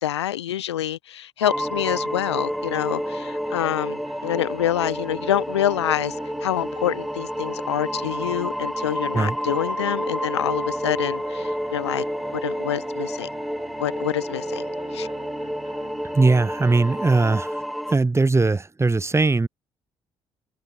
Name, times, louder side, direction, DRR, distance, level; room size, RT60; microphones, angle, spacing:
voice 1, 0.0-6.2 6.4-12.0 12.4-13.3 13.8-14.7 14.9-15.1, left 12 dB, 85° left, 1.1 m, -26 dB
sound 1, 1.4-18.0, equal, ahead, 0.8 m, -30 dB
sound 2, 1.5-17.0, right 5 dB, 40° right, 3.4 m, -43 dB
voice 2, 16.0-17.6 17.9-19.5, right 3 dB, 20° right, 1.0 m, -20 dB
hypercardioid pair, 50°, 14 cm